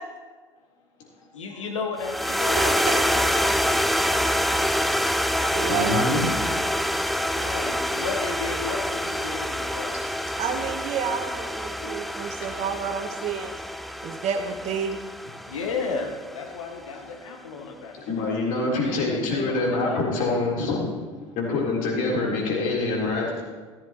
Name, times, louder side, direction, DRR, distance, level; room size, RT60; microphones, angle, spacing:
voice 1, 1.2-3.8 7.3-10.1 13.4-13.7 15.3-18.3 18.5-20.0, left 4 dB, 75° left, 2 dB, 1.6 m, -34 dB
sound 1, 2.0-16.4, equal, ahead, 0.5 m, -26 dB
voice 2, 2.6-3.0 5.5-6.1 10.4-13.5 14.0-15.0, right 6 dB, 45° right, 4 dB, 1.2 m, -29 dB
voice 3, 5.7-6.3 11.8-11.9 18.1-20.9 21.4-23.4, left 3 dB, 55° left, -3 dB, 3.7 m, -25 dB
15.0 x 13.0 x 3.0 m, 1.4 s
figure-of-eight pair, 65°, 16 cm